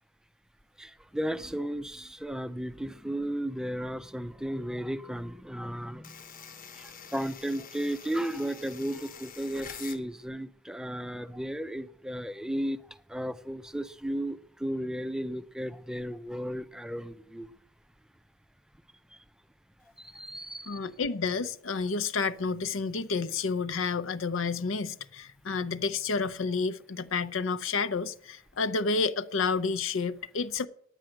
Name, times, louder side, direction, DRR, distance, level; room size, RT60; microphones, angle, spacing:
voice 1, 0.8-6.1 6.8-12.8 13.1-17.5 20.0-20.8, equal, 5° right, 0.4 m, -34 dB
sound 1, 6.0-10.0, left 7 dB, 45° left, 1.0 m, -46 dB
voice 2, 20.7-30.7, left 4 dB, 80° left, 0.7 m, -30 dB
9.9 x 9.0 x 7.5 m
head